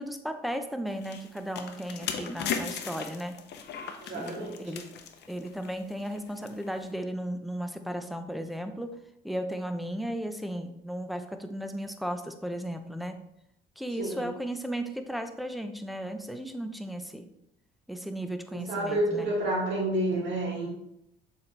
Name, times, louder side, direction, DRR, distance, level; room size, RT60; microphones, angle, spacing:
voice 1, 0.0-3.4 4.0-4.9 5.3-9.0 9.2-13.2 13.8-17.3 17.9-19.3, equal, ahead, 7 dB, 0.6 m, -35 dB
sound 1, 0.9-6.9, left 7 dB, 60° left, 0.8 m, -37 dB
voice 2, 4.0-4.6 14.0-14.3 18.5-20.7, right 1 dB, 70° right, -2 dB, 2.3 m, -29 dB
7.0 x 4.1 x 3.3 m, 0.80 s
cardioid pair, 95°, 19 cm